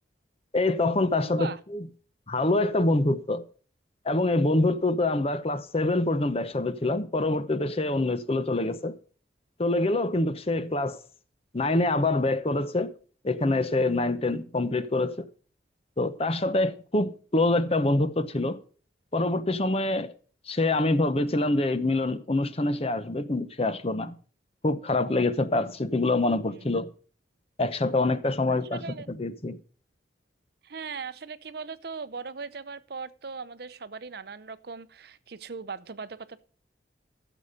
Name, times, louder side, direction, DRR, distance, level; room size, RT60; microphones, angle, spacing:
voice 1, 0.5-1.9 2.3-3.4 4.0-9.0 9.6-11.0 11.5-12.9 13.2-15.1 16.0-18.6 19.1-20.1 20.5-24.2 24.6-26.9 27.6-28.8 29.1-29.6, left 2 dB, 35° left, 0.8 m, -25 dB
voice 2, 1.3-1.6 26.5-26.7 28.5-29.2 30.6-36.4, right 5 dB, 60° right, 0.7 m, -39 dB
14.0 x 7.2 x 5.1 m
head